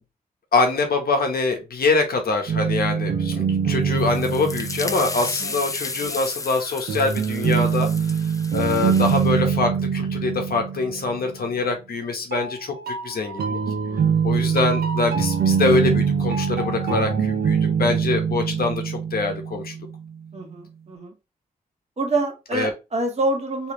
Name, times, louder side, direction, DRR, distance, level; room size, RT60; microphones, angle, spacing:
voice 1, 0.5-7.9 8.5-13.6 14.2-19.7 22.5-22.7, left 3 dB, 75° left, 4 dB, 1.0 m, -24 dB
sound 1, 2.5-5.6 6.9-11.5 12.3-20.0, right 6 dB, 80° right, 0.8 m, -24 dB
sound 2, 3.9-9.3, left 3 dB, 20° left, 0.3 m, -34 dB
voice 2, 13.9-14.2 20.3-21.2 22.0-23.7, right 2 dB, 45° right, 2 dB, 1.3 m, -26 dB
3.2 x 3.1 x 3.0 m, 0.26 s
wide cardioid pair, 110°, 16 cm